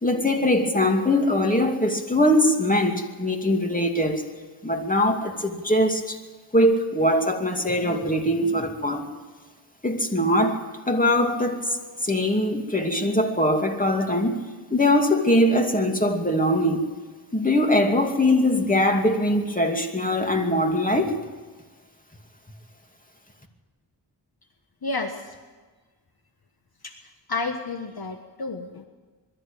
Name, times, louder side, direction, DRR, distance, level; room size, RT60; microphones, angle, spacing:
voice 1, 0.0-4.2 4.6-6.2 6.5-9.1 9.8-11.7 12.0-14.4 14.7-16.9 17.3-21.1, left 1 dB, 20° left, 3 dB, 2.6 m, -22 dB
voice 2, 24.8-25.4 26.8-26.9 27.3-28.9, left 3 dB, 55° left, 6 dB, 1.3 m, -31 dB
22.0 x 13.5 x 9.0 m, 1.4 s
wide cardioid pair, 65°, 44 cm